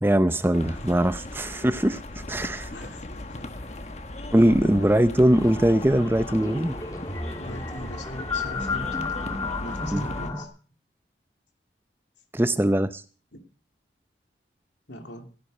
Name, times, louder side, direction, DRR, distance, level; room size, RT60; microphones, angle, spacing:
voice 1, 0.0-2.0 2.3-2.7 4.3-6.7 9.9-10.0 12.3-13.0, right 1 dB, 10° right, 0.6 m, -21 dB
sound 1, 0.5-10.3, left 1 dB, 40° left, 1.3 m, -37 dB
voice 2, 2.7-3.1 4.5-4.9 7.4-9.2 9.6-10.5 12.5-12.7 13.3-13.4 14.9-15.3, left 1 dB, 85° left, 2.9 m, -40 dB
sound 2, 5.3-10.5, left 3 dB, 20° left, 1.7 m, -33 dB
15.0 x 11.5 x 5.4 m
head